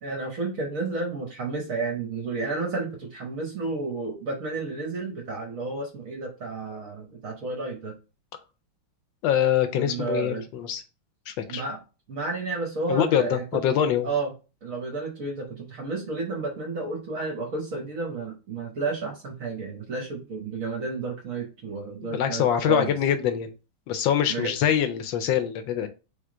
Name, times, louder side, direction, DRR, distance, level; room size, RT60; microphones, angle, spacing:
voice 1, 0.0-7.9 9.7-10.5 11.5-11.8 12.1-13.6 14.0-14.3 14.6-23.0 24.3-24.5, right 3 dB, 55° right, 1.0 m, -31 dB
voice 2, 9.2-10.8 11.3-11.6 12.9-14.1 22.0-23.5 23.9-25.9, left 9 dB, 75° left, 1.2 m, -24 dB
3.5 x 3.4 x 3.7 m
omnidirectional pair, 2.2 m